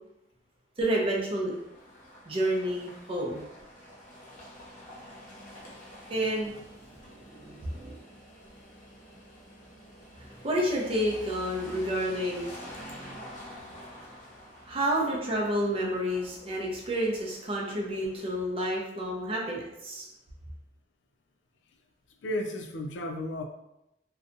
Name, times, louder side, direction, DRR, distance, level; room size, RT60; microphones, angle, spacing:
voice 1, 0.8-1.5 2.3-3.4 6.1-6.6 6.9-8.0 10.2-12.8 13.1-13.2 14.6-20.1, right 1 dB, 30° right, -2 dB, 0.5 m, -30 dB
sound 1, 1.4-18.4, equal, 45° left, 0.7 m, -48 dB
voice 2, 22.2-23.4, left 1 dB, 90° left, 4 dB, 0.4 m, -33 dB
2.6 x 2.2 x 2.5 m, 0.87 s
head